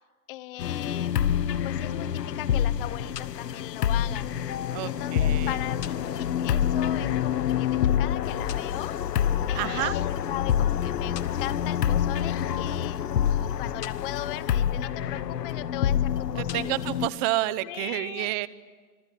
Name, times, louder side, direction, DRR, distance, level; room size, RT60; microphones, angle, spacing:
voice 1, 0.3-1.2 1.6-4.3 4.9-9.0 9.5-13.0 13.3-16.8 17.6-18.4, left 16 dB, 35° left, 18 dB, 0.9 m, -38 dB
sound 1, 0.6-17.1, left 9 dB, 80° left, 1.4 m, -27 dB
voice 2, 4.7-5.6 9.5-10.0 16.4-18.5, right 18 dB, 25° right, 17 dB, 0.8 m, -29 dB
sound 2, 8.2-13.7, left 9 dB, 55° left, 3.8 m, -50 dB
27.0 x 25.5 x 8.4 m, 1.5 s
hypercardioid pair, 145°, 48 cm